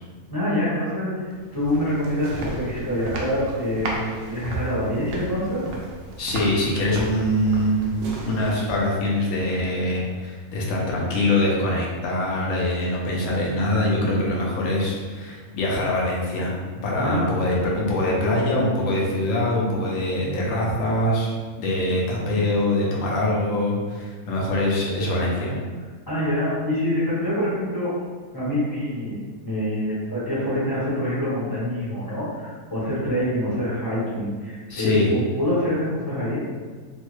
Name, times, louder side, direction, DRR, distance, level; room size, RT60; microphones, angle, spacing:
voice 1, 0.3-5.7 17.0-17.3 26.1-28.0 28.3-36.5, equal, 15° left, -9 dB, 0.8 m, -26 dB
sound 1, 1.3-9.1, right 2 dB, 65° right, 0.7 m, -35 dB
voice 2, 6.2-7.9 8.2-16.5 16.8-25.5 34.7-35.1, left 1 dB, 65° left, -3 dB, 1.0 m, -23 dB
3.1 x 2.2 x 3.0 m, 1.5 s
omnidirectional pair, 1.6 m